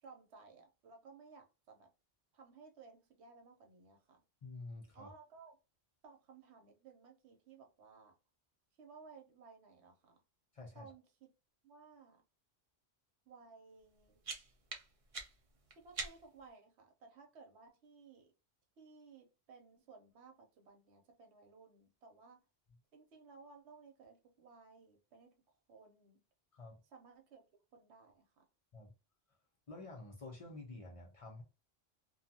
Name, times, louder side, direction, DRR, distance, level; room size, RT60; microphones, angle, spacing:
voice 1, 0.0-1.9 2.3-4.2 4.9-5.6 6.0-8.1 8.8-10.2 10.7-11.3 11.6-12.2 13.3-14.2 15.7-18.3 18.8-22.5 22.9-25.4 25.7-26.2 26.8-27.4 27.7-28.4, right 4 dB, 90° right, 1.0 m, -59 dB
voice 2, 4.4-5.1 10.5-10.9 26.5-26.8 28.7-28.9 29.7-31.4, left 2 dB, 40° left, 0.6 m, -49 dB
sound 1, 13.8-16.5, right 4 dB, 45° right, 0.5 m, -47 dB
2.5 x 2.3 x 2.7 m
omnidirectional pair, 1.1 m